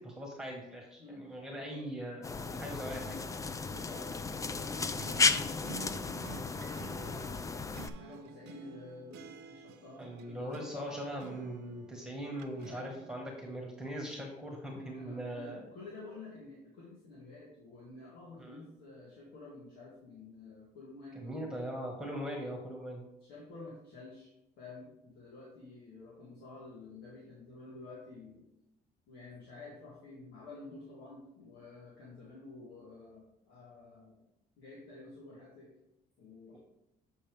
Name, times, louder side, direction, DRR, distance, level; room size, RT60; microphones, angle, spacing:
voice 1, 0.0-3.3 10.0-15.7 18.4-18.6 21.1-23.0 36.5-36.6, equal, 5° right, 0 dB, 1.5 m, -41 dB
voice 2, 1.0-1.8 2.4-2.8 3.6-7.5 8.0-10.9 12.1-12.3 12.7-13.0 14.1-14.3 14.6-21.5 23.2-28.4 29.1-34.3 34.6-35.7 36.2-36.6, left 2 dB, 80° left, -6 dB, 2.2 m, -50 dB
sound 1, 2.2-7.9, left 4 dB, 20° left, 0.4 m, -34 dB
sound 2, 4.7-13.3, right 8 dB, 90° right, 0.6 m, -51 dB
8.0 x 5.6 x 3.4 m, 0.86 s
cardioid pair, 110°, 17 cm